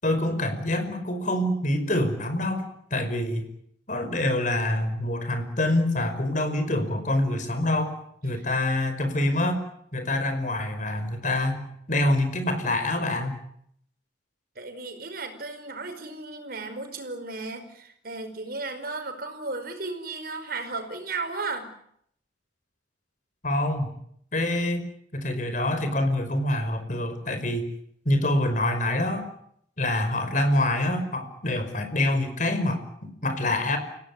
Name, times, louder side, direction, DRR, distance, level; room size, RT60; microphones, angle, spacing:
voice 1, 0.0-3.5 3.9-7.9 8.2-9.6 9.9-13.4 23.4-23.9 24.3-24.8 25.1-27.6 28.1-29.3 29.8-33.8, left 1 dB, 45° left, 8 dB, 5.3 m, -26 dB
voice 2, 14.5-21.7, right 3 dB, 55° right, 8 dB, 5.0 m, -35 dB
29.5 x 17.0 x 9.8 m, 0.69 s
head